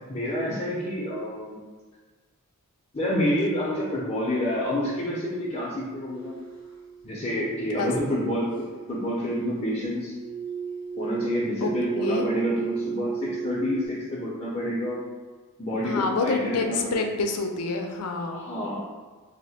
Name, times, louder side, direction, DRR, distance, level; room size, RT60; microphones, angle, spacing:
voice 1, 0.1-1.6 2.9-6.4 7.0-10.1 11.0-15.0 15.6-17.0 18.3-18.8, left 1 dB, 30° left, -7 dB, 0.5 m, -28 dB
sound 1, 4.4-5.3 5.8-7.0 7.4-13.9, right 6 dB, 80° right, 1.0 m, -34 dB
voice 2, 12.0-12.3 15.8-18.4, left 3 dB, 90° left, 4 dB, 0.4 m, -27 dB
2.8 x 2.1 x 4.1 m, 1.4 s
head